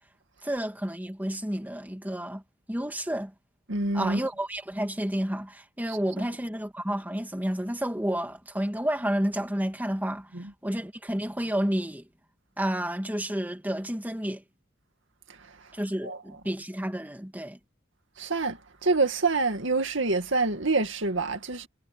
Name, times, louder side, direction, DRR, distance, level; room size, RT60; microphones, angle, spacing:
voice 1, 0.4-2.4 2.7-3.3 3.9-12.1 12.6-14.4 15.7-17.6, right 1 dB, 10° right, 2.2 m, -30 dB
voice 2, 3.7-4.2 5.9-6.0 10.3-10.5 15.3-15.7 16.0-16.2 18.2-21.7, right 3 dB, 65° right, 2.3 m, -27 dB
head